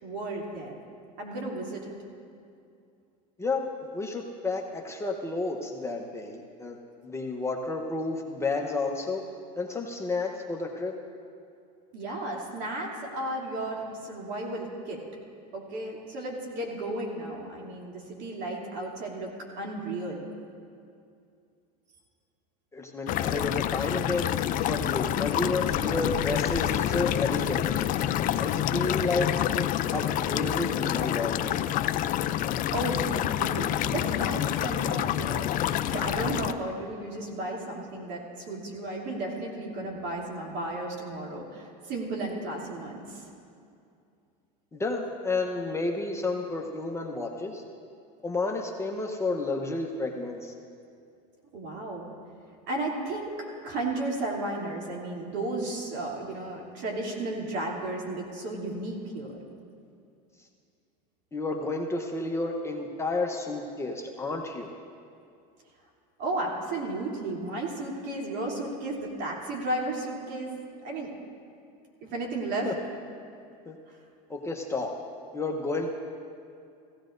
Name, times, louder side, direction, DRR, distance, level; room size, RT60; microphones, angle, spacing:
voice 1, 0.0-0.7 1.2-1.8 11.9-15.0 15.5-20.3 32.7-43.3 51.5-52.1 52.7-59.4 66.2-71.1 72.0-72.7 73.9-74.0, right 2 dB, 55° right, -2 dB, 3.0 m, -34 dB
voice 2, 3.9-6.8 7.0-9.2 9.5-10.9 22.7-24.3 24.6-28.0 28.4-31.6 44.7-47.6 48.2-50.5 61.3-64.7 72.6-72.7 73.7-73.8 74.3-74.9 75.3-75.9, left 3 dB, 15° left, 1 dB, 0.9 m, -31 dB
sound 1, 23.1-36.5, left 11 dB, 40° left, 0.5 m, -28 dB
16.5 x 16.0 x 2.6 m, 2.5 s
supercardioid pair, 110°, 21 cm